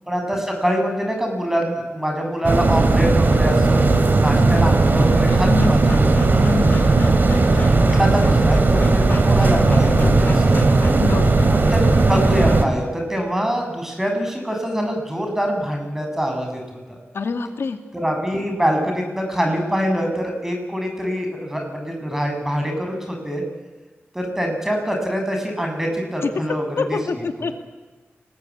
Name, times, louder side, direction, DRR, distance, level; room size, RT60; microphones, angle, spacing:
voice 1, 0.1-6.3 7.4-10.7 11.5-16.6 16.9-17.0 17.9-23.4 24.1-27.0, equal, 10° right, 3 dB, 7.5 m, -24 dB
sound 1, 2.4-12.6, right 3 dB, 50° right, 3.2 m, -16 dB
Breathing / Dog, 3.4-12.6, left 2 dB, 50° left, 4.8 m, -34 dB
voice 2, 5.4-6.0 6.5-6.9 11.0-11.5 17.1-17.8 26.2-26.4 26.8-27.5, left 4 dB, 85° left, 6 dB, 2.2 m, -26 dB
29.0 x 20.5 x 8.7 m, 1.3 s
wide cardioid pair, 90°, 4 cm